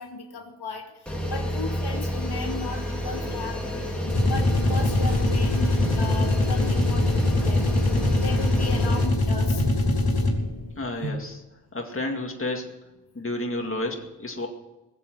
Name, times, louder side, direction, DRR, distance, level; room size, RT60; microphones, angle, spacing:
voice 1, 0.0-3.9 4.2-7.7 8.2-9.6, left 3 dB, 85° left, 2 dB, 2.2 m, -36 dB
sound 1, 1.1-9.1, equal, 5° left, 3.9 m, -29 dB
sound 2, 4.0-10.6, left 2 dB, 70° left, 2.9 m, -23 dB
sound 3, 5.0-11.1, right 2 dB, 60° right, 2.3 m, -38 dB
voice 2, 10.8-11.4 11.7-12.7 13.1-14.5, left 2 dB, 35° left, 2 dB, 2.2 m, -31 dB
20.5 x 7.7 x 7.7 m, 1.0 s
wide cardioid pair, 85°, 39 cm